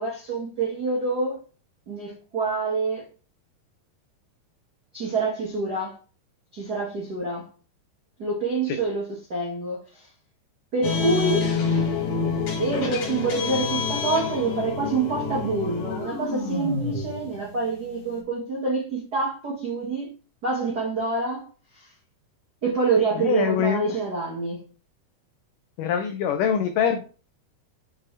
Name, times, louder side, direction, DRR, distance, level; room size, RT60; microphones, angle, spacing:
voice 1, 0.0-1.4 1.9-3.0 4.9-6.0 6.5-7.5 8.2-9.0 9.3-10.1 10.7-11.5 12.6-20.1 20.4-21.5 21.7-21.9 22.6-24.6, right 3 dB, 75° right, 0.9 m, -26 dB
sound 1, 10.8-18.2, left 5 dB, 50° left, 2.2 m, -28 dB
voice 2, 23.2-23.8 25.8-27.1, left 8 dB, 85° left, 1.8 m, -24 dB
7.3 x 5.0 x 3.3 m
omnidirectional pair, 4.5 m